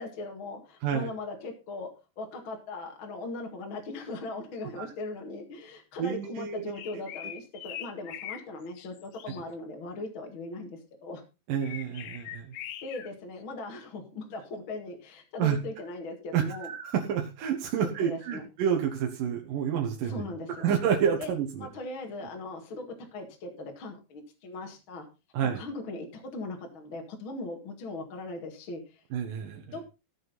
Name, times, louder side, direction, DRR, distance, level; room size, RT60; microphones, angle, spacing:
voice 1, 0.0-1.9 2.2-11.2 12.8-16.7 17.8-18.5 20.0-20.7 21.2-21.3 21.6-25.1 25.4-29.0 29.7-29.8, left 2 dB, 40° left, 2 dB, 2.4 m, -39 dB
voice 2, 6.0-6.6 11.5-12.6 15.4-15.6 16.3-20.3 20.6-21.7 25.3-25.6 29.1-29.8, right 8 dB, 70° right, 1 dB, 2.9 m, -29 dB
sound 1, 6.7-8.4 8.8-9.4 11.6-13.1, left 12 dB, 75° left, 2.5 m, -42 dB
15.0 x 7.5 x 4.1 m, 0.29 s
omnidirectional pair, 4.1 m